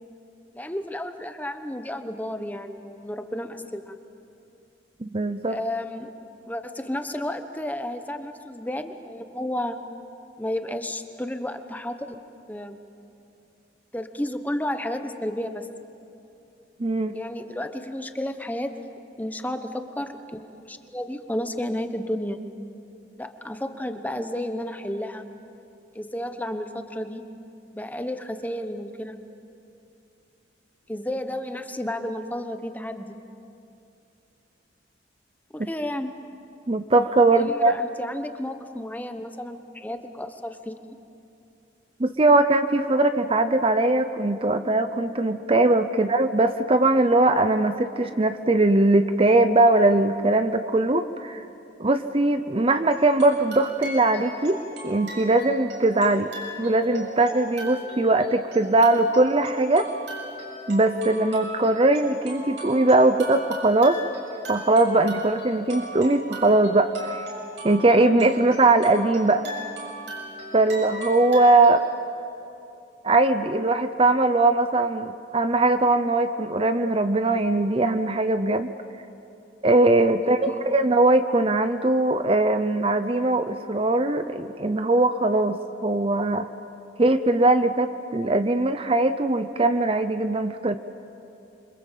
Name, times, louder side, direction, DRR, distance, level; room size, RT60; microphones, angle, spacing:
voice 1, 0.5-4.0 5.5-6.1 6.4-9.8 10.4-12.2 12.5-12.8 13.9-15.7 17.1-18.7 19.2-22.4 23.2-25.2 25.9-27.2 27.7-29.2 30.9-33.2 35.5-36.1 37.3-40.7 45.9-46.1 80.1-80.7, left 1 dB, 10° left, 7 dB, 1.1 m, -32 dB
voice 2, 5.0-5.6 16.8-17.2 36.7-37.7 42.0-51.4 51.8-56.3 56.6-59.9 60.7-64.0 64.5-67.3 67.6-69.5 70.5-71.8 73.0-78.7 79.6-86.5 87.0-90.8, right 2 dB, 30° right, 10 dB, 0.7 m, -20 dB
sound 1, 52.9-71.7, right 1 dB, 75° right, 7.2 m, -38 dB
27.5 x 25.0 x 7.5 m, 2.7 s
head